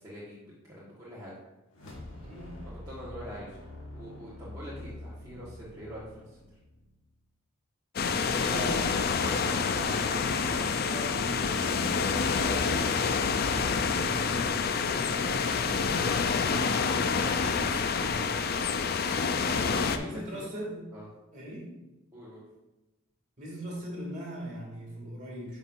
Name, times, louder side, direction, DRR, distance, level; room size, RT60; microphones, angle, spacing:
voice 1, 0.0-1.4 2.6-3.6 3.9-6.3 12.4-12.7 19.5-20.4 20.9-21.0 22.1-22.4, equal, 15° right, -9 dB, 1.2 m, -44 dB
sound 1, 1.7-7.1, left 1 dB, 80° left, 1.5 m, -46 dB
voice 2, 2.2-2.8 8.2-11.9 13.5-18.8 19.8-20.9 21.3-21.8 23.4-25.6, equal, 35° right, -4 dB, 2.3 m, -41 dB
sound 2, 8.0-20.0, left 5 dB, 45° left, 0.4 m, -27 dB
9.4 x 5.2 x 2.5 m, 1.0 s
head